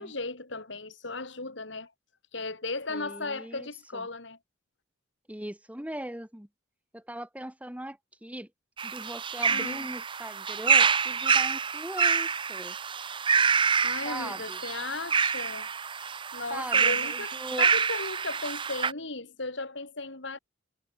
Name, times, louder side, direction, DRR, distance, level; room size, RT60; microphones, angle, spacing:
voice 1, 0.0-1.9 2.3-4.4 9.5-9.9 13.8-15.7 16.3-20.4, left 3 dB, 70° left, 3.4 m, -36 dB
voice 2, 2.9-4.1 5.3-6.5 6.9-8.5 8.8-12.8 14.0-14.6 16.5-17.7, right 1 dB, 5° right, 1.5 m, -40 dB
sound 1, 8.8-18.9, right 6 dB, 25° right, 0.7 m, -27 dB
head